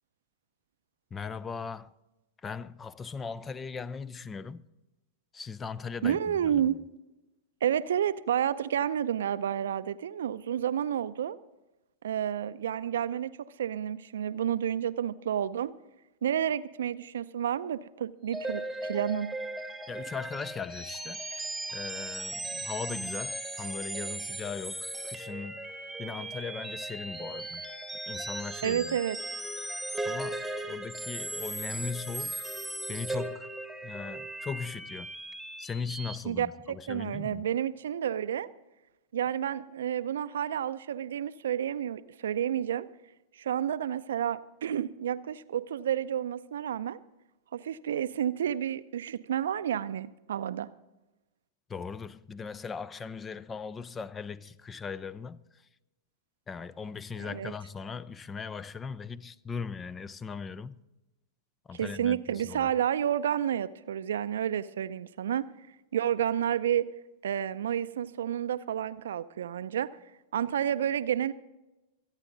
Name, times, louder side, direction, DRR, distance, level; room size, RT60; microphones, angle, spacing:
voice 1, 1.1-1.9 2.4-4.6 5.3-6.8 19.9-21.2 21.7-25.7 26.0-27.7 28.1-29.0 30.1-32.4 32.9-33.5 33.8-35.1 35.6-37.5 51.7-55.7 56.5-60.8 61.7-62.7, left 5 dB, 20° left, 0.5 m, -39 dB
voice 2, 6.0-6.8 7.6-11.4 12.0-15.7 16.2-19.3 28.6-29.2 36.3-38.5 39.1-42.9 43.4-47.0 47.5-50.7 57.3-57.5 61.7-65.5 65.9-66.9 67.2-69.9 70.3-71.3, right 9 dB, 70° right, 0.5 m, -30 dB
sound 1, 18.3-36.2, right 1 dB, ahead, 1.5 m, -37 dB
25.5 x 8.9 x 3.9 m
hypercardioid pair, 100°, 0 cm